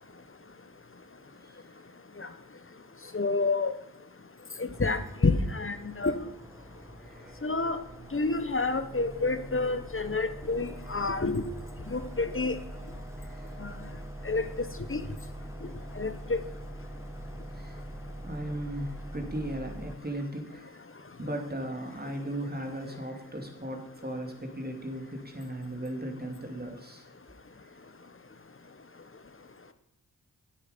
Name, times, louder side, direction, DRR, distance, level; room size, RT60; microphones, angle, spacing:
voice 1, 3.1-3.7 4.6-6.2 7.4-7.8 8.1-11.4 11.9-12.6 13.6-13.7 14.2-14.4 14.9-15.0 16.0-16.4, left 3 dB, 35° left, 11 dB, 1.1 m, -28 dB
sound 1, 4.7-20.0, right 1 dB, 10° right, 1.2 m, -43 dB
voice 2, 7.0-7.4 13.2-13.5 15.8-15.9 17.5-17.8 18.2-20.8 21.2-27.0, right 1 dB, 25° right, 4 dB, 2.6 m, -37 dB
9.4 x 8.6 x 5.2 m, 0.83 s
cardioid pair, 40°, 37 cm